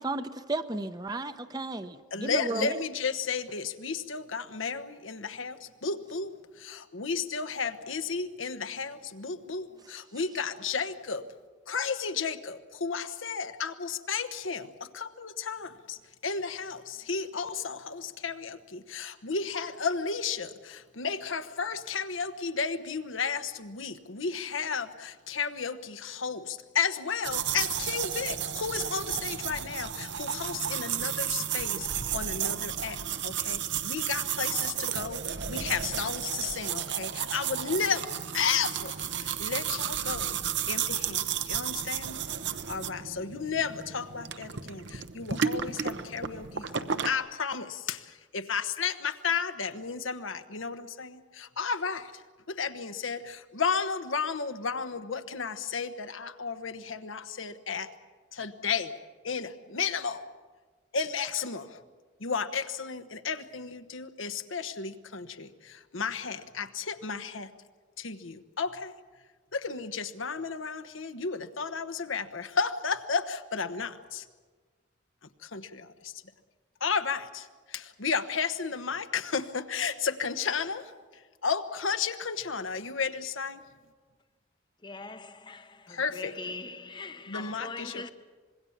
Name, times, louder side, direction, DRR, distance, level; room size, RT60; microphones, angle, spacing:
voice 1, 0.0-2.8, right 2 dB, 20° right, 0.7 m, -33 dB
voice 2, 2.1-11.3 11.7-40.4 40.7-42.2 42.7-52.2 52.5-57.9 58.3-58.9 59.2-60.2 60.9-61.8 62.2-67.5 68.0-68.9 69.5-74.3 75.4-76.1 76.8-83.6 85.9-86.3 87.3-88.1, left 5 dB, 80° left, 1.1 m, -33 dB
sound 1, 27.2-47.1, right 8 dB, 65° right, 0.9 m, -33 dB
voice 3, 84.8-88.1, left 3 dB, 25° left, 0.7 m, -41 dB
25.5 x 21.5 x 7.3 m
head